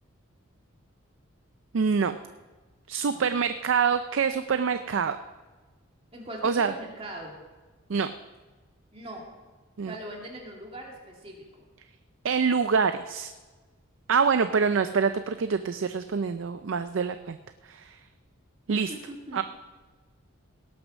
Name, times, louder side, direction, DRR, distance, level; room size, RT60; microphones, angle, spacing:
voice 1, 1.7-2.2 2.9-5.2 6.4-6.7 7.9-8.1 9.8-9.9 12.2-13.3 14.1-17.4 17.6-18.0 18.7-18.9 19.3-19.4, right 5 dB, 65° right, 10 dB, 0.4 m, -25 dB
voice 2, 6.1-7.3 8.9-9.2 9.8-11.6 14.7-14.8 18.7-19.4, right 1 dB, 25° right, -1 dB, 2.5 m, -41 dB
17.5 x 6.9 x 6.2 m, 1.3 s
head